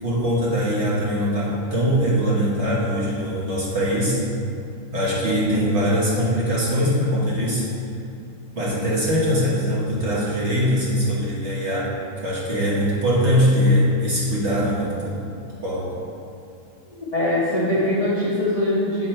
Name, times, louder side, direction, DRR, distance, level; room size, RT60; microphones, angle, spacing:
voice 1, 0.0-4.2 4.9-7.7 8.5-12.0 12.2-15.2 15.6-16.0, equal, 40° right, -7 dB, 1.1 m, -22 dB
voice 2, 17.1-19.1, left 1 dB, 55° left, -8 dB, 0.4 m, -22 dB
8.0 x 3.6 x 4.3 m, 2.7 s
omnidirectional pair, 2.3 m